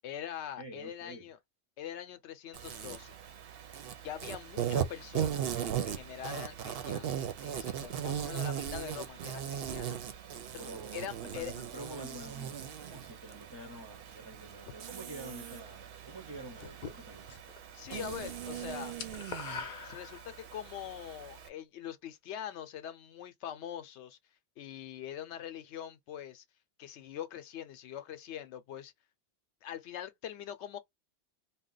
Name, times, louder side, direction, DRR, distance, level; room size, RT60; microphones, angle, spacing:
voice 1, 0.0-1.4 1.8-3.1 4.0-5.4 5.8-10.0 10.5-10.6 10.9-11.5 17.7-19.0 19.8-24.2 24.6-26.4 26.8-28.9 29.6-30.8, left 10 dB, 85° left, 0.9 m, -43 dB
voice 2, 0.6-1.3 10.6-17.3, right 1 dB, 30° right, 0.6 m, -47 dB
Insect, 2.5-21.5, right 9 dB, 65° right, 0.8 m, -39 dB
sound 1, 16.6-17.6 17.9-18.2 18.5-20.6, left 5 dB, 55° left, 0.7 m, -43 dB
2.4 x 2.1 x 3.7 m
omnidirectional pair, 1.1 m